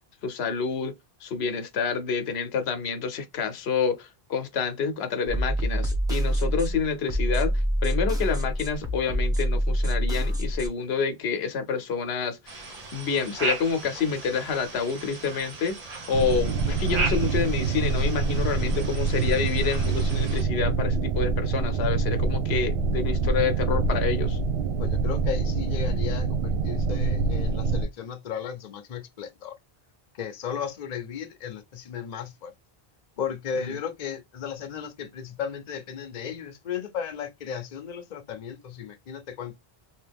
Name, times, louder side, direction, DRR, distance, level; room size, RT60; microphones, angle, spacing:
voice 1, 0.2-0.9 1.2-12.6 12.9-24.4 33.6-33.8, left 5 dB, 85° left, 0.9 m, -28 dB
sound 1, 5.3-10.7, equal, 5° right, 0.8 m, -26 dB
sound 2, 12.5-20.4, right 3 dB, 40° right, 0.8 m, -36 dB
sound 3, 16.1-27.9, right 4 dB, 85° right, 0.8 m, -25 dB
voice 2, 24.8-29.5 30.2-32.5 33.2-39.6, left 7 dB, 50° left, 0.6 m, -35 dB
2.9 x 2.8 x 3.4 m
omnidirectional pair, 1.1 m